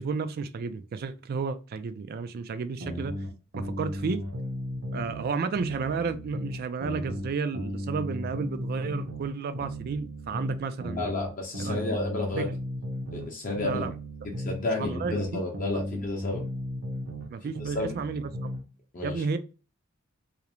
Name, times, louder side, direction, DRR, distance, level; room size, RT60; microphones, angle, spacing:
voice 1, 0.0-3.1 3.5-4.2 4.9-11.0 11.6-11.8 12.4-12.5 13.6-13.9 14.8-15.2 15.7-15.8 17.3-18.5 19.0-19.4, right 5 dB, 45° right, 0.3 m, -32 dB
sound 1, 2.8-5.3 5.5-9.3 9.5-13.3 13.5-17.3 17.5-18.6, equal, 60° right, 0.7 m, -35 dB
voice 2, 11.0-12.4 13.1-13.8 14.4-16.4 17.4-17.9 18.9-19.2, left 2 dB, 40° left, 0.6 m, -31 dB
2.4 x 2.0 x 2.8 m
head